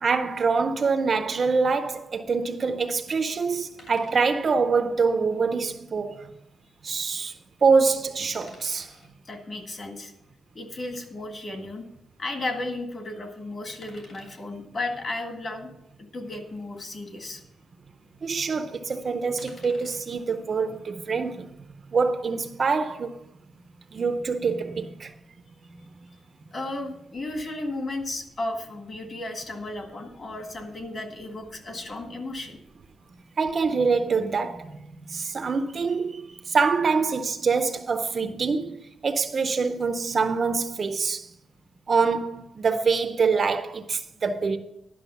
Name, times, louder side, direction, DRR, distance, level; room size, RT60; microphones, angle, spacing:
voice 1, 0.0-6.3 6.8-7.3 7.6-8.9 18.2-21.7 21.9-23.2 23.9-25.1 25.7-25.8 33.4-41.3 41.9-44.6, right 4 dB, 35° right, 0.6 m, -25 dB
sound 1, 3.8-4.3 5.8-6.0 8.3-9.1 11.5-11.7 13.8-14.5 16.4-16.6 16.9-17.0 19.4-20.0 21.7-22.1, left 2 dB, 50° left, 2.8 m, -51 dB
voice 2, 9.3-10.1 10.5-11.9 12.2-15.7 16.0-17.4 26.5-32.6, left 2 dB, 35° left, 1.7 m, -34 dB
11.0 x 6.1 x 6.9 m
wide cardioid pair, 170°, 0 cm